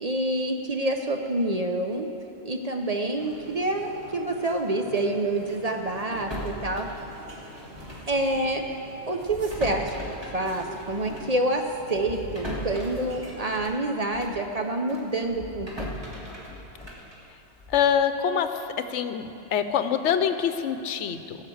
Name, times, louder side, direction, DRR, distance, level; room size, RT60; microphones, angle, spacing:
voice 1, 0.0-2.1 2.4-6.9 8.1-8.6 9.1-10.0 10.3-15.9, right 1 dB, 40° right, 3 dB, 0.6 m, -27 dB
sound 1, 3.2-13.6, right 1 dB, 55° right, 1.4 m, -46 dB
sound 2, 6.1-8.2 8.4-8.6 9.2-14.5 14.9-18.0, equal, 20° right, 1.8 m, -39 dB
voice 2, 17.7-21.4, left 8 dB, 80° left, 10 dB, 0.9 m, -25 dB
16.0 x 5.7 x 7.8 m, 2.8 s
omnidirectional pair, 1.2 m